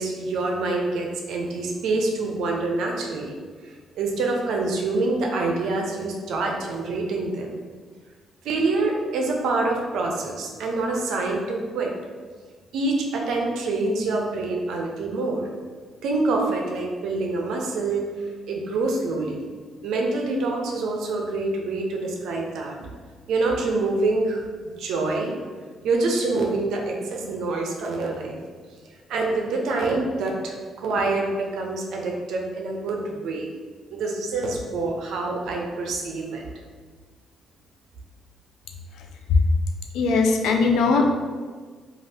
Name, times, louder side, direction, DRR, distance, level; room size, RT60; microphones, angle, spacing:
voice 1, 0.0-3.3 3.9-7.5 8.4-11.9 12.7-15.5 16.0-18.1 18.5-19.4 19.8-22.8 23.3-24.4 24.8-25.3 25.8-28.4 29.1-33.5 33.9-36.4, right 3 dB, 80° right, 0 dB, 0.4 m, -26 dB
voice 2, 39.9-41.0, left 4 dB, 85° left, 3 dB, 0.3 m, -19 dB
2.7 x 2.3 x 3.3 m, 1.5 s
cardioid pair, 90°, 0 cm